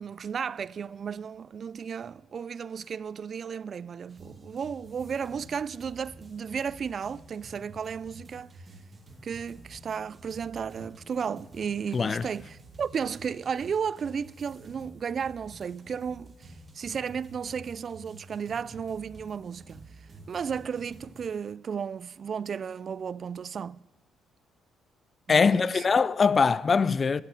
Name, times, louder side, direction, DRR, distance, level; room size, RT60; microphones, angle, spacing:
voice 1, 0.0-8.5 9.2-19.9 20.3-23.8 25.3-25.8, right 7 dB, 50° right, 0.3 m, -34 dB
sound 1, 4.1-21.3, right 1 dB, 30° right, 2.3 m, -50 dB
voice 2, 11.9-12.3 25.3-27.2, left 5 dB, 40° left, 0.4 m, -22 dB
12.5 x 8.1 x 9.0 m
cardioid pair, 90°, 0 cm